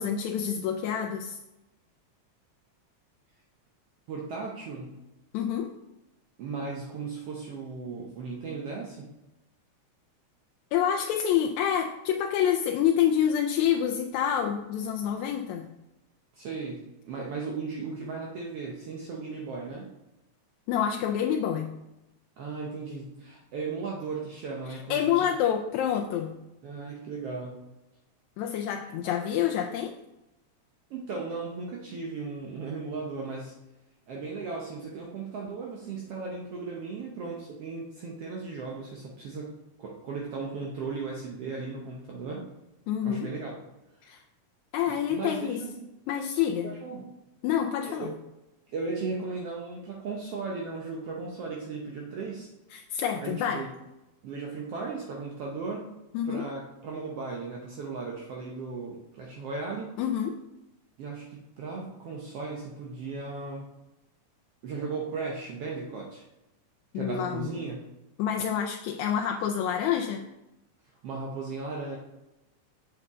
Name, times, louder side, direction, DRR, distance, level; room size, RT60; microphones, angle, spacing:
voice 1, 0.0-1.4 5.3-5.7 10.7-15.7 20.7-21.7 24.9-26.3 28.4-30.0 42.9-43.3 44.0-44.2 44.7-45.6 46.1-46.7 47.4-48.1 52.7-53.7 56.1-56.4 60.0-60.4 66.9-67.6 68.2-70.3, left 9 dB, 85° left, 3 dB, 1.9 m, -27 dB
voice 2, 4.1-5.0 6.4-9.1 16.3-19.9 22.4-25.3 26.6-27.6 30.9-33.6 34.1-42.5 43.1-43.6 45.1-45.8 46.6-47.1 47.9-48.2 48.7-52.5 53.2-53.7 54.2-55.9 56.3-59.9 61.0-63.7 64.6-66.3 66.9-67.9 71.0-72.0, right 4 dB, 65° right, -1 dB, 1.7 m, -36 dB
7.8 x 6.8 x 3.6 m, 0.96 s
omnidirectional pair, 3.3 m